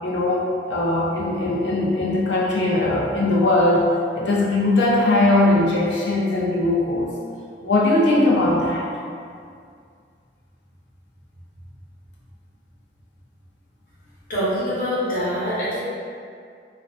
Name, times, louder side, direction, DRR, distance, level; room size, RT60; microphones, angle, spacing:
voice 1, 0.0-3.9 4.1-7.1 7.6-8.8, left 2 dB, 80° left, -4 dB, 0.5 m, -20 dB
voice 2, 14.3-15.8, equal, 50° left, -10 dB, 0.8 m, -24 dB
2.4 x 2.2 x 2.5 m, 2.3 s
head